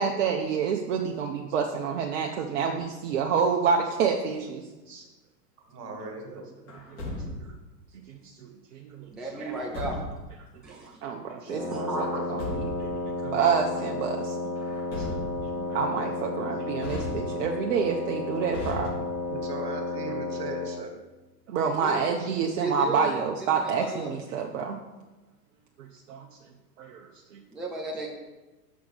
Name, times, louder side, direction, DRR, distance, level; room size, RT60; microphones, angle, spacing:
voice 1, 0.0-5.1 6.0-6.1 6.9-7.5 7.9-9.5 10.5-14.4 14.9-15.1 15.4-18.9 21.5-24.8 25.8-26.3 26.8-27.4, right 6 dB, 50° right, 2 dB, 0.8 m, -29 dB
voice 2, 5.7-6.4 19.3-20.9, right 2 dB, 65° right, 3 dB, 1.9 m, -37 dB
Truck, 6.7-7.6 9.5-10.3 12.0-13.0 14.6-15.6 16.8-17.6 18.5-19.4, left 2 dB, 30° left, 2.7 m, -37 dB
voice 3, 9.1-10.0 10.6-11.0 11.5-12.6 21.6-22.0 22.6-23.2 23.6-24.1 27.5-28.1, right 2 dB, ahead, -2 dB, 0.5 m, -35 dB
Wind instrument woodwind instrument, 11.4-20.8, left 2 dB, 75° left, 2.4 m, -32 dB
6.3 x 4.6 x 6.2 m, 1.1 s
figure-of-eight pair, 100°, 49 cm